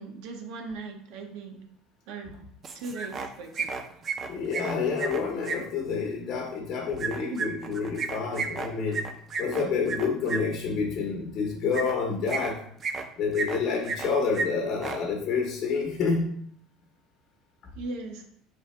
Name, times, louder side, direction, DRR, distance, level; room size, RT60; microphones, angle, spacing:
voice 1, 0.0-1.6 2.1-2.3 2.7-3.8 7.3-7.4 17.8-18.2, right 3 dB, 75° right, 4 dB, 0.7 m, -38 dB
sound 1, 2.6-3.3 3.5-5.6 7.0-10.4 11.7-11.9 12.3-13.0 13.3-14.1 14.3-14.5 14.7-15.0, right 4 dB, 30° right, 0.5 m, -32 dB
voice 2, 4.3-9.1 9.4-12.6 13.2-16.3, left 5 dB, 50° left, 0 dB, 1.0 m, -28 dB
4.7 x 3.3 x 3.2 m, 0.64 s
cardioid pair, 140°, 0 cm